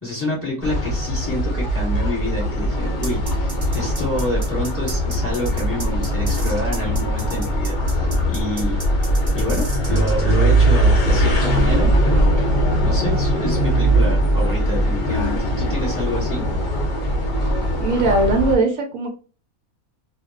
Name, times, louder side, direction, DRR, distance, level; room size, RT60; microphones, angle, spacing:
voice 1, 0.0-8.8 9.3-12.5 12.8-16.4, left 1 dB, 10° left, -5 dB, 1.1 m, -28 dB
sound 1, 0.6-18.6, right 1 dB, 50° left, 0.6 m, -20 dB
sound 2, 3.0-10.3, right 2 dB, 25° right, 0.6 m, -35 dB
voice 2, 17.8-19.1, right 2 dB, 70° right, 3 dB, 0.9 m, -19 dB
2.4 x 2.2 x 2.3 m, 0.36 s
omnidirectional pair, 1.5 m